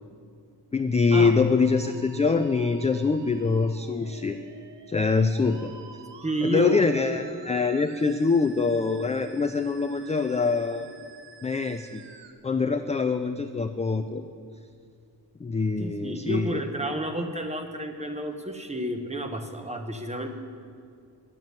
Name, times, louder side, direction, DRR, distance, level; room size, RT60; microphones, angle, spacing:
voice 1, 0.7-4.4 4.9-5.7 6.4-10.9 11.4-12.0 12.4-14.2 15.4-16.6, left 4 dB, 20° left, 8 dB, 0.3 m, -24 dB
Musical instrument, 1.6-12.3, right 5 dB, 90° right, 0.9 m, -50 dB
voice 2, 6.2-6.8 15.8-20.3, right 1 dB, 15° right, 6 dB, 1.0 m, -30 dB
10.5 x 7.4 x 9.4 m, 2.3 s
wide cardioid pair, 115°, 41 cm